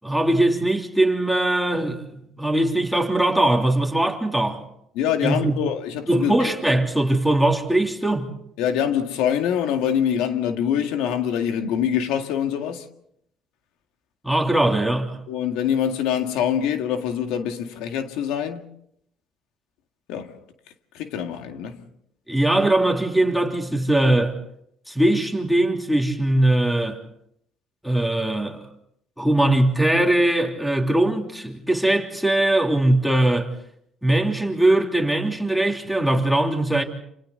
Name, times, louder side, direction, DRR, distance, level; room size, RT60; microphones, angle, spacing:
voice 1, 0.0-4.6 5.2-5.6 6.1-8.3 14.2-15.2 22.3-24.4 24.9-27.0 27.8-28.6 29.2-33.5 34.0-36.8, right 1 dB, ahead, 3.1 m, -21 dB
voice 2, 4.9-6.8 8.6-12.9 15.3-18.6 20.1-20.4 20.9-21.8, left 9 dB, 90° left, 2.0 m, -25 dB
28.5 x 28.5 x 4.0 m
cardioid pair, 130°, 0 cm